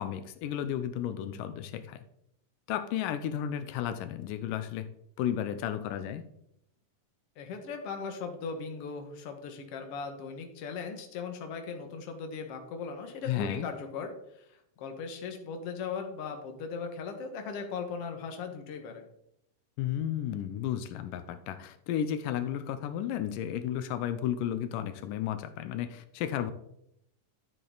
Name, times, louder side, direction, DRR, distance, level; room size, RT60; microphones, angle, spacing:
voice 1, 0.0-2.0 2.7-4.9 5.2-6.2 13.2-13.7 19.8-26.5, left 10 dB, 90° left, 11 dB, 2.3 m, -33 dB
voice 2, 7.4-19.1, left 5 dB, 55° left, 4 dB, 2.1 m, -38 dB
12.0 x 7.6 x 3.9 m, 0.75 s
omnidirectional pair, 3.7 m